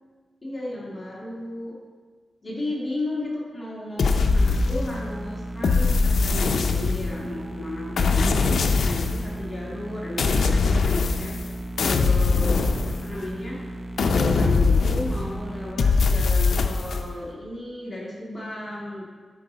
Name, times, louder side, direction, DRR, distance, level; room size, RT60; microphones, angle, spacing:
voice 1, 0.4-1.7 2.4-11.4 11.8-13.6 14.0-19.1, left 1 dB, 20° left, -6 dB, 1.9 m, -34 dB
sound 1, 4.0-5.1 5.6-7.3 8.0-9.3 10.2-11.5 11.8-13.4 14.0-15.3 15.8-17.0, left 4 dB, 75° left, 0.5 m, -21 dB
sound 2, 4.2-15.7, right 1 dB, 20° right, 0.7 m, -35 dB
10.5 x 4.6 x 4.1 m, 1.5 s
wide cardioid pair, 150°, 0 cm